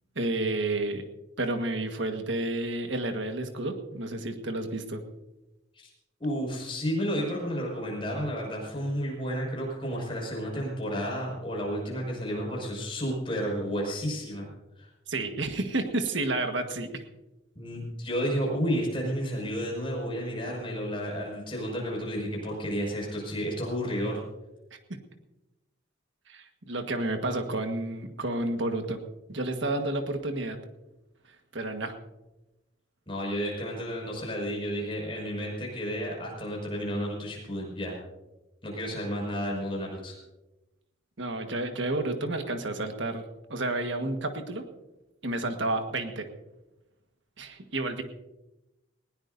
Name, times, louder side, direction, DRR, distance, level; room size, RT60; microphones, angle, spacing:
voice 1, 0.1-1.0 1.4-5.0 15.1-17.0 26.3-29.0 29.3-30.6 31.5-32.0 41.2-43.2 43.5-44.6 45.2-46.3 47.4-48.0, right 2 dB, 65° right, 6 dB, 1.5 m, -30 dB
voice 2, 6.2-14.5 14.8-14.9 17.6-24.2 33.1-38.0 38.6-40.2, equal, 25° left, -1 dB, 5.8 m, -31 dB
20.0 x 17.5 x 2.7 m, 1.0 s
head